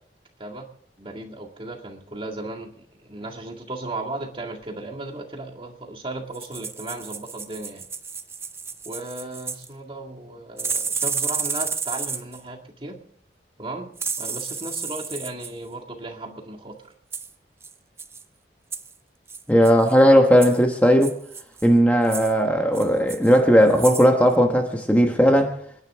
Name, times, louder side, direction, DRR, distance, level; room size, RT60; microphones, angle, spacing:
voice 1, 1.0-7.9 8.9-13.0 13.6-13.9 14.2-16.9, right 2 dB, 30° right, 2.0 m, -35 dB
sound 1, 6.3-9.7 10.6-12.4 14.0-15.5 17.1-17.3 17.6-17.7 18.0-18.2 18.7-18.9 19.3-19.9 20.4-20.6 21.0-21.7 22.0-22.3 22.7-23.4 23.7-24.1 24.3-24.4, right 5 dB, 15° right, 0.6 m, -31 dB
voice 2, 19.5-21.1 21.6-25.5, equal, 10° left, 1.3 m, -17 dB
28.5 x 10.5 x 3.6 m
head